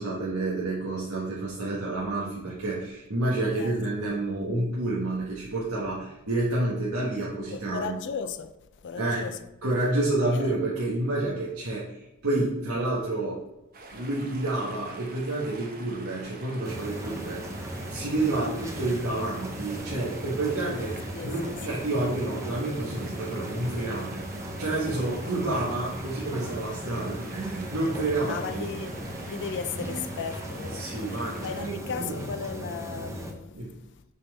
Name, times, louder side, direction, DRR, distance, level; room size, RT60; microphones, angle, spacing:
voice 1, 0.0-8.0 9.0-9.2 9.6-13.4 13.9-17.4 17.9-21.0 21.2-24.1 24.6-28.6 30.7-32.2 33.5-33.7, right 2 dB, 80° right, 1.5 m, -29 dB
voice 2, 7.5-8.5 8.8-9.4 10.4-10.5 21.1-21.6 28.3-28.9 29.3-33.6, left 6 dB, 55° left, 0.4 m, -36 dB
sound 1, 13.7-31.9, right 2 dB, 40° right, 0.9 m, -46 dB
sound 2, 16.6-33.3, right 1 dB, 15° right, 0.8 m, -37 dB
10.0 x 4.3 x 3.4 m
head